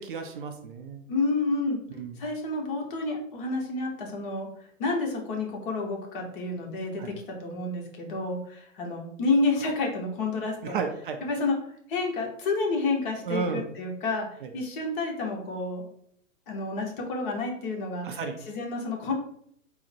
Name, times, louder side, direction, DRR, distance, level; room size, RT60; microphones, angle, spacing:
voice 1, 0.0-1.1 2.0-2.1 7.0-7.1 10.6-11.2 13.3-13.6 18.0-18.4, right 5 dB, 40° right, 5 dB, 0.5 m, -32 dB
voice 2, 1.1-1.8 2.2-4.5 4.8-10.8 11.2-11.6 11.9-14.3 14.5-15.9 16.5-18.2 18.5-19.1, left 3 dB, 40° left, 1 dB, 1.1 m, -29 dB
3.8 x 2.1 x 4.3 m, 0.68 s
figure-of-eight pair, 120°, 40 cm